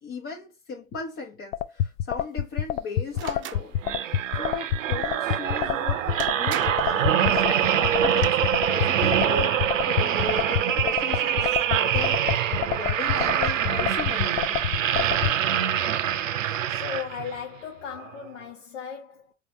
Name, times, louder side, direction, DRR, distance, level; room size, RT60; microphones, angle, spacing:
voice 1, 0.0-3.8 4.3-9.6 9.9-14.7 16.4-16.6, left 4 dB, 35° left, 0.9 m, -37 dB
sound 1, 1.5-15.3, left 10 dB, 55° left, 0.5 m, -26 dB
sound 2, 3.1-3.6 5.7-5.8 6.2-6.9 7.9-8.3, right 11 dB, 30° right, 0.6 m, -36 dB
sound 3, 3.8-17.4 17.9-18.1, right 10 dB, 80° right, 0.6 m, -25 dB
voice 2, 16.7-19.3, left 7 dB, 70° left, 0.8 m, -36 dB
4.6 x 3.3 x 3.0 m
figure-of-eight pair, 75°, 38 cm